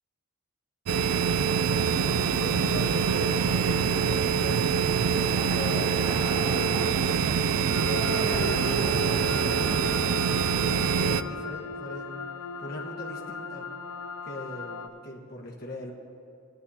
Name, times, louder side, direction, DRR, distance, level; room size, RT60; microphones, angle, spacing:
sound 1, 0.9-11.2, right 7 dB, 75° right, 0.4 m, -25 dB
sound 2, 1.4-10.9, equal, 35° right, 2.4 m, -38 dB
voice 1, 2.2-4.9 5.5-6.1 6.4-7.3 7.7-8.9 9.2-12.3 12.6-13.7 14.2-15.9, left 1 dB, 45° left, -2 dB, 1.4 m, -40 dB
sound 3, 7.7-14.9, left 4 dB, 90° left, 0.5 m, -38 dB
17.5 x 10.5 x 2.8 m, 2.5 s
head